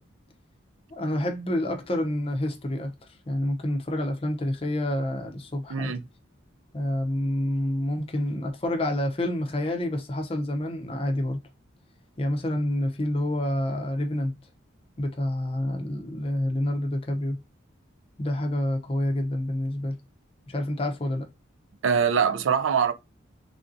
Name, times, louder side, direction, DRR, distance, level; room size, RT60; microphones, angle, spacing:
voice 1, 0.9-2.9 3.3-6.0 6.7-11.4 12.2-14.3 15.0-17.4 18.2-20.0 20.5-21.3, left 1 dB, 30° left, 0.5 m, -28 dB
voice 2, 5.7-6.0 21.8-22.9, right 7 dB, 80° right, 0.4 m, -23 dB
3.3 x 2.6 x 2.5 m
head